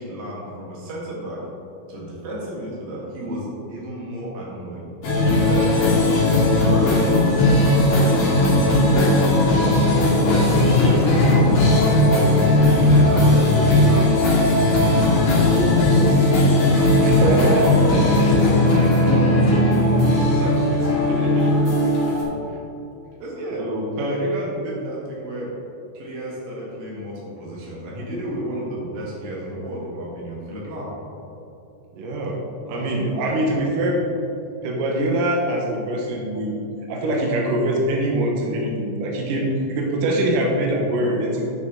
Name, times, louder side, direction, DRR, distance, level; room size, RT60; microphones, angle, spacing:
voice 1, 0.0-1.4 1.9-4.9 5.3-9.7 10.2-11.7 12.6-14.1 14.8-21.7 23.2-23.7 24.1-25.5 25.9-30.9 32.6-33.7 39.4-39.5, right 1 dB, 60° right, -5 dB, 3.0 m, -32 dB
sound 1, 5.0-22.2, left 1 dB, 55° left, 3.4 m, -17 dB
voice 2, 17.0-17.6 23.5-24.2 31.9-32.4 32.7-34.0 34.6-36.5 36.9-41.5, right 1 dB, 85° right, -2 dB, 1.9 m, -23 dB
9.8 x 6.0 x 3.7 m, 2.8 s
omnidirectional pair, 5.2 m